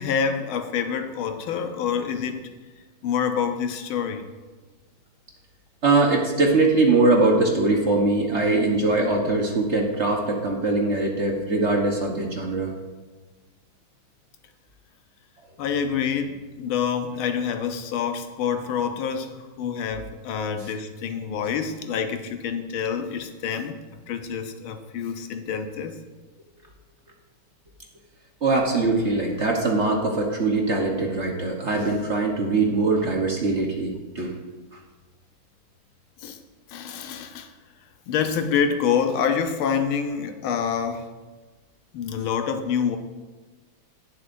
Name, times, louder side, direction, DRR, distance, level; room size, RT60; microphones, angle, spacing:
voice 1, 0.0-2.6 3.0-4.3 15.6-23.8 24.1-26.0 36.2-36.4 36.7-37.5 38.1-41.1 41.9-43.0, left 7 dB, 85° left, 7 dB, 1.6 m, -27 dB
voice 2, 5.8-12.7 28.4-34.3, right 3 dB, 40° right, 0 dB, 1.2 m, -22 dB
18.0 x 7.5 x 2.6 m, 1.3 s
omnidirectional pair, 2.2 m